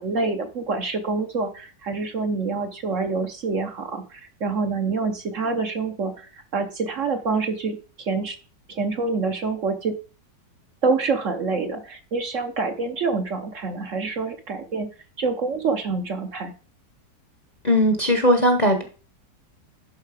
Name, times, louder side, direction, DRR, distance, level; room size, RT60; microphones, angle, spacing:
voice 1, 0.0-8.4 8.7-9.9 10.8-14.9 15.2-16.5, right 4 dB, 50° right, 6 dB, 1.1 m, -26 dB
voice 2, 17.6-18.8, equal, 30° left, 5 dB, 0.9 m, -18 dB
11.5 x 4.4 x 4.9 m, 0.37 s
omnidirectional pair, 1.9 m